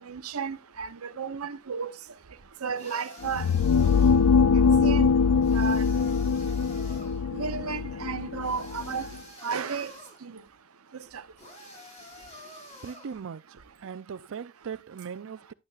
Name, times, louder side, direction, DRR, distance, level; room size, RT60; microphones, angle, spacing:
voice 1, 0.1-0.9 1.2-1.9 2.6-3.4 4.8-5.1 5.5-5.8 7.3-9.0 9.4-9.9 10.2-10.3, right 5 dB, 85° right, 0.8 m, -32 dB
sound 1, 2.7-4.3 5.4-7.2 8.4-10.2 11.4-13.2, left 1 dB, 30° left, 6.9 m, -48 dB
sound 2, 3.2-9.1, left 5 dB, 85° left, 0.4 m, -23 dB
voice 2, 12.8-15.5, right 6 dB, 65° right, 0.4 m, -39 dB
11.0 x 9.0 x 2.4 m
head